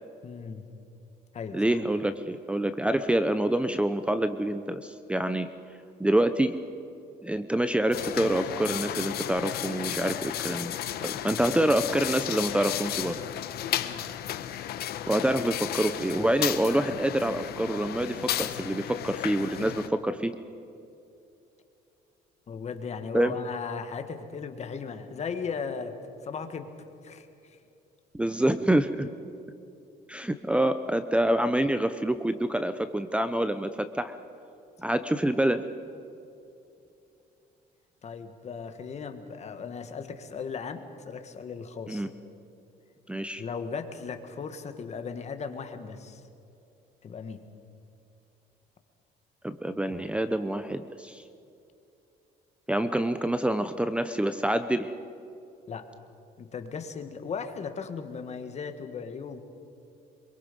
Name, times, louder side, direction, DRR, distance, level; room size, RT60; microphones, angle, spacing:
voice 1, 0.2-0.7 1.3-1.8 11.3-11.4 13.8-14.1 22.5-26.0 26.2-26.7 27.0-27.6 38.0-42.1 43.4-46.2 47.0-47.4 55.7-55.9 56.4-59.4, left 5 dB, 40° left, 8 dB, 1.8 m, -37 dB
voice 2, 1.5-5.5 6.0-6.6 7.2-13.2 15.1-20.4 23.1-23.3 28.1-29.1 30.1-34.2 34.8-35.7 41.9-42.1 43.1-43.4 49.4-51.2 52.7-54.9, right 1 dB, 5° right, 11 dB, 0.7 m, -26 dB
sound 1, 7.9-19.9, left 12 dB, 65° left, 1.1 m, -33 dB
26.0 x 23.0 x 5.4 m, 2.7 s
cardioid pair, 110°, 17 cm